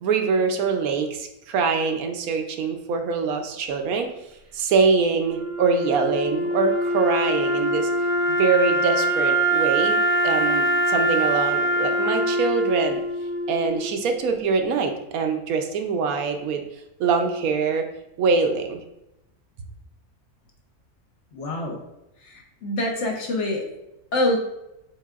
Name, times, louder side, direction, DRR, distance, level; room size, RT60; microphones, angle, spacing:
voice 1, 0.0-4.1 4.5-7.9 8.3-10.0 10.2-13.0 13.5-16.6 17.0-17.9 18.2-18.8, right 5 dB, 75° right, 5 dB, 1.0 m, -24 dB
Wind instrument woodwind instrument, 5.2-14.3, right 1 dB, 45° right, 0.7 m, -23 dB
voice 2, 21.3-21.8 22.2-23.6 24.1-24.4, left 1 dB, 60° left, 1 dB, 0.9 m, -25 dB
6.5 x 3.3 x 2.4 m, 0.88 s
omnidirectional pair, 1.6 m